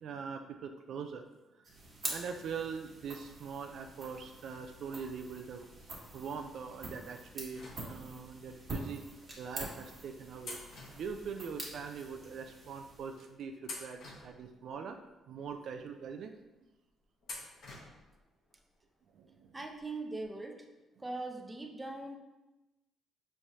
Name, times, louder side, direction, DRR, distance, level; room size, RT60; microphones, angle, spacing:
voice 1, 0.0-1.3 2.1-5.7 6.1-7.6 7.9-9.0 9.4-10.6 10.9-15.0 15.3-16.3 19.1-19.5, right 6 dB, 70° right, 4 dB, 0.3 m, -42 dB
sound 1, 1.6-13.3, right 2 dB, 40° right, 1.2 m, -46 dB
sound 2, 7.5-8.4 9.2-9.3 10.4-11.8 12.1-12.2 13.0-13.2 13.6-14.9 15.4-15.5 17.2-18.2 18.5-18.6 19.8-19.9 20.2-20.3, left 2 dB, 65° left, 0.9 m, -48 dB
voice 2, 19.5-20.7 21.0-22.2, right 2 dB, 15° right, 3 dB, 0.5 m, -41 dB
4.6 x 3.2 x 2.7 m, 1.0 s
cardioid pair, 90°, 0 cm